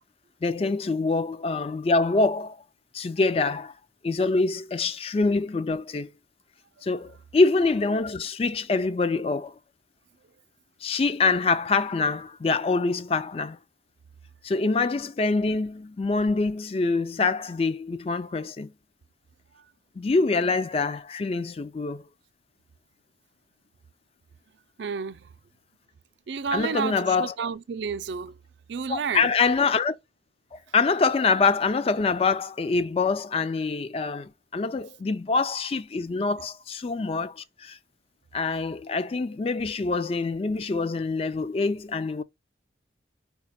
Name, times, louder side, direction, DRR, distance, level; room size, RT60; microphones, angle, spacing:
voice 1, 0.4-2.6 2.9-3.7 4.0-6.1 6.8-9.6 10.8-13.6 14.4-18.7 20.0-22.0 26.5-27.3 28.9-29.9 30.5-37.8 38.3-42.2, left 4 dB, 30° left, 0.3 m, -25 dB
voice 2, 24.8-25.3 26.3-28.4 28.7-29.3, right 6 dB, 70° right, 0.4 m, -31 dB
4.9 x 2.3 x 4.1 m
head